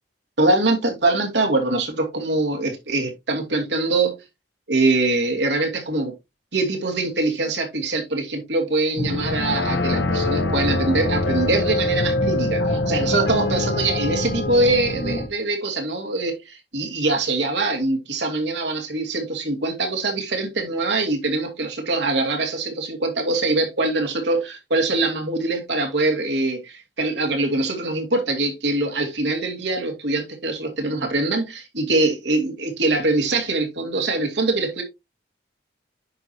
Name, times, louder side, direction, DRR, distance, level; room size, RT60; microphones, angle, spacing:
voice 1, 0.4-4.2 4.7-6.1 6.5-34.8, right 2 dB, 75° right, 2.4 m, -23 dB
sound 1, 9.0-15.3, left 2 dB, 75° left, 1.5 m, -24 dB
10.0 x 4.7 x 2.9 m
head